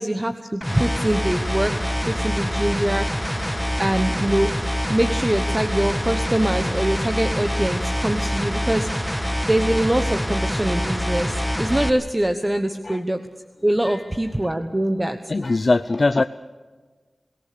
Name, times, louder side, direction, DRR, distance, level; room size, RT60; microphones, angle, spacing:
voice 1, 0.0-1.7 2.1-3.1 3.8-4.5 4.9-8.9 9.5-13.2 13.6-15.2, right 1 dB, 20° right, 8 dB, 1.1 m, -23 dB
sound 1, 0.6-11.9, equal, ahead, 1.5 m, -25 dB
voice 2, 15.3-16.2, left 3 dB, 50° left, 11 dB, 0.6 m, -21 dB
25.0 x 18.0 x 6.8 m, 1.4 s
wide cardioid pair, 85°, 0 cm